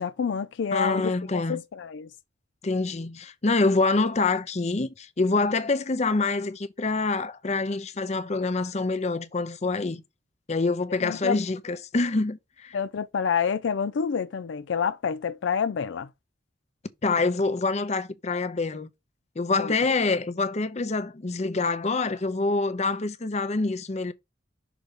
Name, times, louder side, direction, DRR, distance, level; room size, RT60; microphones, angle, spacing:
voice 1, 0.0-2.1 11.0-11.4 12.7-16.1 19.6-19.7, left 6 dB, 70° left, 0.4 m, -28 dB
voice 2, 0.7-1.6 2.6-10.0 10.5-12.8 17.0-18.9 19.4-24.1, left 3 dB, 35° left, 0.7 m, -26 dB
6.0 x 3.9 x 5.0 m
head